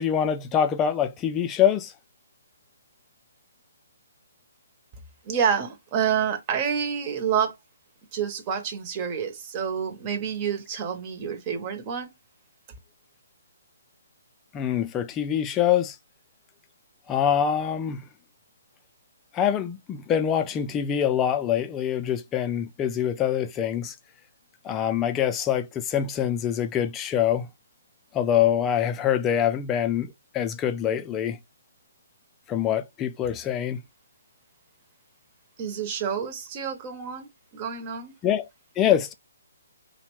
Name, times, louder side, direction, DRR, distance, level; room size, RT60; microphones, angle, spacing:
voice 1, 0.0-1.9 14.5-16.0 17.1-18.0 19.3-23.9 24.6-27.5 28.1-31.4 32.5-33.8 38.2-38.5 38.8-39.1, left 9 dB, 15° left, 0.3 m, -24 dB
voice 2, 5.2-7.6 8.1-12.1 35.6-37.3 37.5-38.1, right 7 dB, 30° right, 0.7 m, -28 dB
2.8 x 2.1 x 3.0 m
figure-of-eight pair, 140°, 0 cm